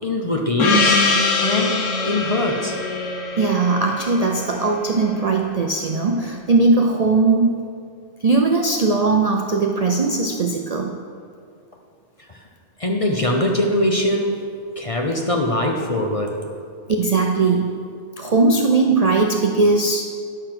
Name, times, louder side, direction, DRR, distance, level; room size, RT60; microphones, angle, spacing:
voice 1, 0.0-1.0 1.4-2.8 12.3-12.4 12.8-14.4 14.8-16.4, left 1 dB, 35° left, 1 dB, 0.6 m, -22 dB
Gong, 0.6-5.4, left 3 dB, 65° left, 1.3 m, -23 dB
voice 2, 3.4-7.7 8.2-11.0 16.9-17.9 18.2-20.1, right 3 dB, 60° right, 2 dB, 0.4 m, -19 dB
10.0 x 6.8 x 5.8 m, 2.4 s
omnidirectional pair, 1.5 m